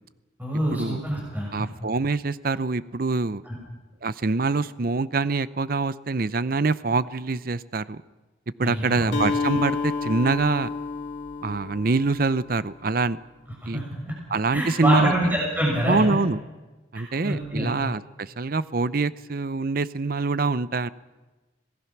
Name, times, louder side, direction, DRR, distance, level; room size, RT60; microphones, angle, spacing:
voice 1, 0.4-1.5 3.4-3.5 8.6-9.2 13.7-14.1 14.5-16.0 16.9-17.7, equal, 10° right, -3 dB, 6.5 m, -26 dB
voice 2, 1.5-3.4 4.0-8.0 8.6-10.7 11.4-13.2 13.7-13.8 14.3-15.3 15.9-16.4 16.9-20.9, right 3 dB, 50° right, 16 dB, 0.6 m, -25 dB
Acoustic guitar, 9.1-13.0, left 4 dB, 65° left, 2.7 m, -30 dB
26.5 x 18.5 x 6.0 m, 1.2 s
head